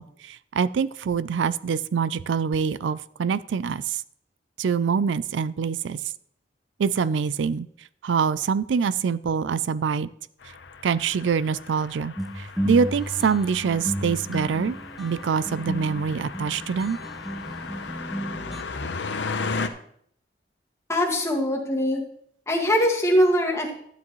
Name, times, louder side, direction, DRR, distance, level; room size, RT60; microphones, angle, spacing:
voice 1, 0.0-4.0 4.6-6.0 6.8-7.7 8.0-10.1 10.8-17.0, right 6 dB, 90° right, 17 dB, 0.4 m, -25 dB
sound 1, 10.4-19.7, left 4 dB, 75° left, 0.8 m, -36 dB
sound 2, 12.2-18.6, equal, ahead, 0.6 m, -33 dB
voice 2, 20.9-22.0 22.5-23.7, equal, 15° left, -1 dB, 1.8 m, -22 dB
12.0 x 9.7 x 3.1 m, 0.66 s
head